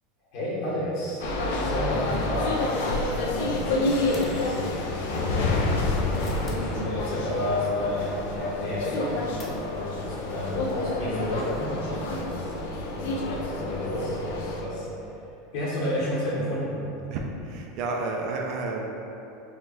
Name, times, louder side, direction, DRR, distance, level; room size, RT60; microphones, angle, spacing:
voice 1, 0.3-1.2 1.5-5.7 5.9-14.9 15.5-16.8, left 1 dB, 55° left, -8 dB, 1.4 m, -31 dB
sound 1, 1.2-14.6, left 2 dB, 80° left, 0.5 m, -29 dB
sound 2, 4.1-5.1 5.8-6.7 9.4-10.0 10.3-10.4 10.6-10.7, left 1 dB, 20° left, 0.5 m, -37 dB
voice 2, 17.1-18.9, right 3 dB, 50° right, 1 dB, 0.4 m, -31 dB
3.6 x 2.4 x 4.2 m, 2.9 s
supercardioid pair, 160°, 0 cm